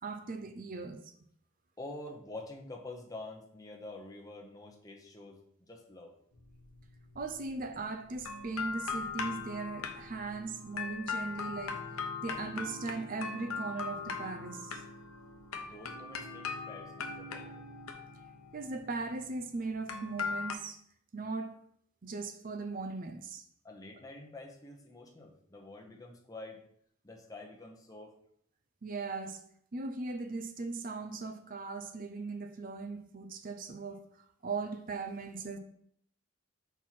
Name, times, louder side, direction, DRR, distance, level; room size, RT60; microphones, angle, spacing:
voice 1, 0.0-1.1 7.2-11.9 12.2-14.8 18.5-20.8 21.1-21.6 22.0-23.4 28.8-29.4 29.7-35.6, right 3 dB, 40° right, 0.5 m, -39 dB
voice 2, 1.8-6.1 15.5-17.7 23.6-26.6 27.0-28.1, left 2 dB, 15° left, 0.9 m, -47 dB
sound 1, 6.4-7.8 8.1-20.5, left 5 dB, 90° left, 0.8 m, -40 dB
4.6 x 4.3 x 5.8 m
head